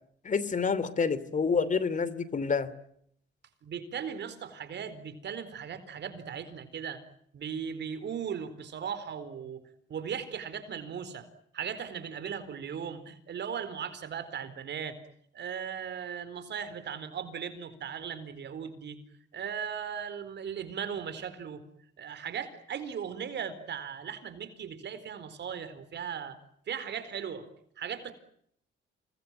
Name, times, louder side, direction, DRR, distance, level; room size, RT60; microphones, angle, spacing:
voice 1, 0.2-2.7, left 5 dB, 40° left, 18 dB, 2.8 m, -28 dB
voice 2, 3.6-7.0 7.3-11.3 11.5-15.0 15.3-19.0 19.3-21.6 22.0-26.4 26.7-27.5 27.8-28.1, right 7 dB, 60° right, 12 dB, 4.2 m, -38 dB
29.0 x 21.0 x 9.1 m, 0.68 s
cardioid pair, 90°, 20 cm